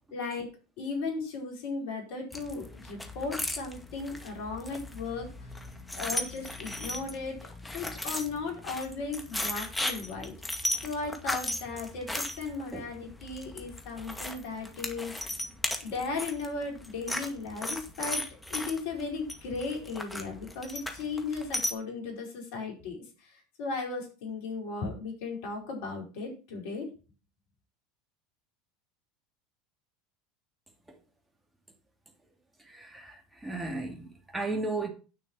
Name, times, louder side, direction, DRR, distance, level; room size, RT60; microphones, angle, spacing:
voice 1, 0.1-0.5 0.8-5.3 5.9-7.4 7.7-10.3 10.8-15.1 15.8-18.2 18.5-23.0 23.2-23.3 23.6-26.9, left 4 dB, 65° left, 4.6 m, -36 dB
sound 1, 2.3-21.7, left 1 dB, 10° left, 2.1 m, -37 dB
voice 2, 32.6-34.9, right 3 dB, 10° right, 2.2 m, -35 dB
9.7 x 6.0 x 6.1 m
hypercardioid pair, 75°, 0 cm